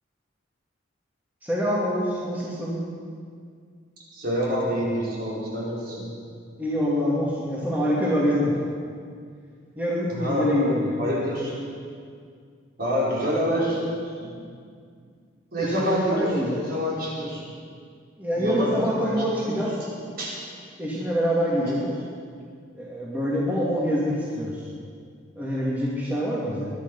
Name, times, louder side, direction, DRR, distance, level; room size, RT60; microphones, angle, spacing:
voice 1, 1.4-2.8 6.6-8.5 9.8-10.9 15.6-16.6 18.2-19.8 20.8-21.9 22.7-24.7 25.4-26.7, equal, 10° right, -6 dB, 2.4 m, -25 dB
voice 2, 4.1-6.1 10.1-10.5 11.0-11.6 12.8-13.8 14.2-14.3 15.5-17.5 18.3-19.1 19.4-19.5 20.2-20.3 21.6-21.7, equal, 50° right, -5 dB, 5.0 m, -27 dB
22.0 x 11.5 x 5.6 m, 2.1 s
head